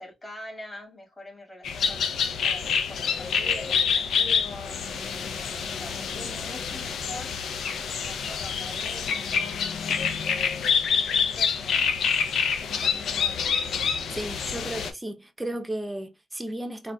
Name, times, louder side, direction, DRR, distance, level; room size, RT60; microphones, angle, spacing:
voice 1, 0.0-2.1 2.4-9.7 10.2-12.0 12.4-13.5, left 1 dB, 20° left, 2.1 m, -44 dB
sound 1, 1.6-14.9, left 6 dB, 75° left, 0.6 m, -27 dB
voice 2, 14.1-16.9, right 1 dB, 15° right, 0.7 m, -34 dB
3.9 x 2.4 x 2.3 m
supercardioid pair, 55°, 0 cm